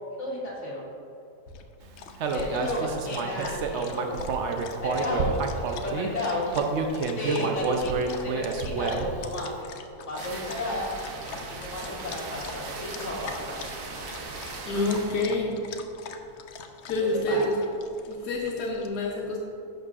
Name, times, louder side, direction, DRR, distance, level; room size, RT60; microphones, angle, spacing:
voice 1, 0.2-0.8 2.3-4.3 4.8-6.5 7.2-9.7 10.0-10.9 11.5-13.6 17.3-17.4, left 1 dB, 50° left, -6 dB, 2.0 m, -33 dB
Dog, 1.5-18.9, left 6 dB, 70° left, 0.6 m, -44 dB
Human voice, 2.2-6.1 6.5-9.2, right 4 dB, 60° right, 0.8 m, -28 dB
sound 1, 10.2-15.3, right 3 dB, 80° right, 1.4 m, -38 dB
voice 2, 14.6-15.7 16.8-17.6 18.1-19.4, left 2 dB, 85° left, -2 dB, 1.4 m, -27 dB
11.0 x 6.5 x 2.4 m, 2.7 s
omnidirectional pair, 1.6 m